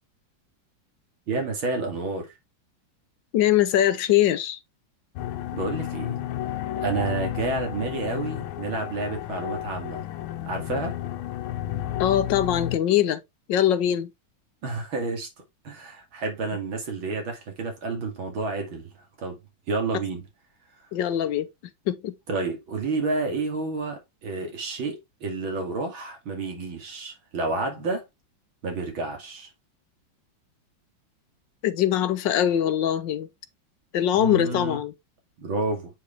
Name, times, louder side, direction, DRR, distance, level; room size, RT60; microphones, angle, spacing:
voice 1, 1.3-2.3 5.5-6.2 6.8-10.0 10.5-11.0 14.6-15.3 15.6-18.9 19.2-19.4 19.7-20.2 22.3-28.0 28.6-29.5 34.2-34.8 35.4-35.9, right 3 dB, 75° right, 3.2 m, -30 dB
voice 2, 3.3-4.6 12.0-13.2 13.5-14.1 20.9-21.5 21.9-22.1 31.6-33.3 33.9-34.9, left 11 dB, 70° left, 1.4 m, -22 dB
sound 1, 5.2-12.8, left 12 dB, 90° left, 1.5 m, -32 dB
8.1 x 4.9 x 3.3 m
omnidirectional pair, 2.2 m